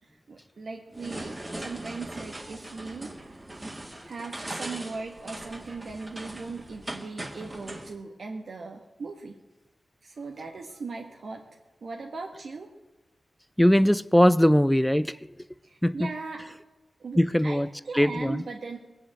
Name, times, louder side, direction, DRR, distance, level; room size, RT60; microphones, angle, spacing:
voice 1, 0.0-3.3 4.0-9.3 10.0-12.7 15.6-16.4 17.0-18.8, right 4 dB, 70° right, 1.4 m, -39 dB
sound 1, 0.9-7.9, right 1 dB, 25° right, 2.0 m, -40 dB
voice 2, 13.6-15.2 15.8-16.1 17.2-17.7 17.9-18.4, equal, 5° left, 0.5 m, -20 dB
20.5 x 7.0 x 8.9 m
wide cardioid pair, 95°, 0 cm